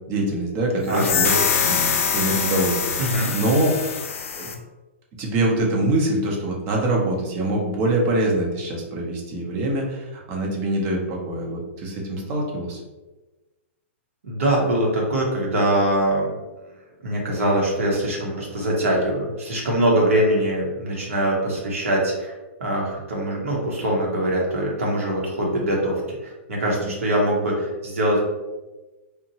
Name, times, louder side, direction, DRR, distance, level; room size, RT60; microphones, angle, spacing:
voice 1, 0.1-1.4 1.6-3.7 4.4-4.5 5.2-12.8 26.6-26.9, right 1 dB, 35° right, -1 dB, 0.7 m, -24 dB
sound 1, 0.9-4.6, left 6 dB, 75° left, 0.4 m, -24 dB
voice 2, 3.0-3.3 14.2-16.3 17.0-22.3 22.6-28.2, right 1 dB, 80° right, -3 dB, 0.9 m, -23 dB
2.8 x 2.1 x 2.8 m, 1.1 s
hypercardioid pair, 140°, 7 cm